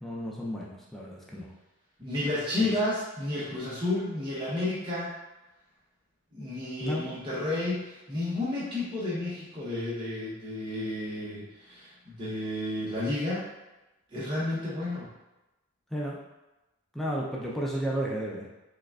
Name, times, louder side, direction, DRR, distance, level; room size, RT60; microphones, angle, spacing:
voice 1, 0.0-1.5 2.6-2.7 6.8-7.1 15.9-16.2 16.9-18.4, right 1 dB, ahead, -4 dB, 0.4 m, -33 dB
voice 2, 2.0-5.1 6.3-13.5 14.1-15.1, left 2 dB, 20° right, -8 dB, 0.8 m, -31 dB
4.7 x 2.3 x 2.3 m, 1.0 s
head